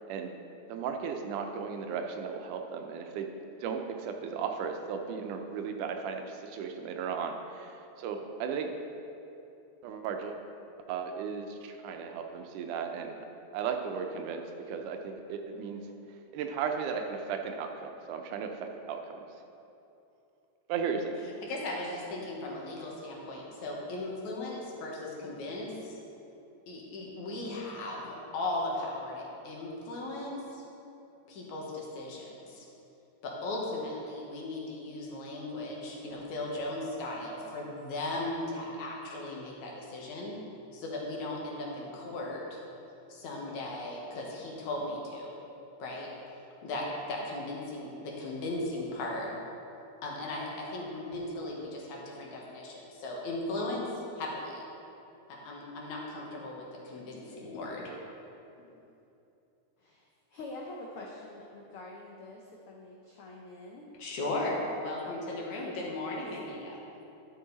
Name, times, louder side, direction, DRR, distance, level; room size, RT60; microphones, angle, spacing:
voice 1, 0.7-3.3 3.6-8.7 9.8-10.4 10.9-13.2 13.5-15.8 16.3-19.2 20.7-21.2 57.9-58.0, right 6 dB, 85° right, 5 dB, 2.2 m, -35 dB
voice 2, 21.4-26.0 26.7-30.6 31.3-32.7 33.2-40.4 40.7-42.6 43.1-45.4 45.8-46.1 46.6-49.3 50.0-54.7 55.3-58.0 58.6-58.7 64.0-66.8, left 2 dB, 70° left, -2 dB, 2.6 m, -37 dB
voice 3, 59.8-63.9, left 2 dB, 90° left, -1 dB, 1.2 m, -46 dB
11.5 x 7.0 x 4.0 m, 2.8 s
omnidirectional pair, 3.5 m